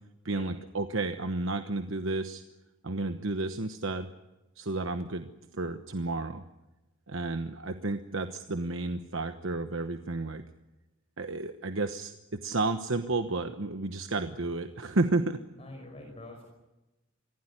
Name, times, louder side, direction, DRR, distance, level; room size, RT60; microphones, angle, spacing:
voice 1, 0.2-2.4 2.8-4.1 4.6-6.4 7.1-10.4 11.2-15.4, right 2 dB, 70° right, 8 dB, 1.1 m, -32 dB
voice 2, 15.6-16.5, left 1 dB, 30° left, 2 dB, 5.2 m, -46 dB
25.0 x 16.5 x 9.9 m, 1.0 s
head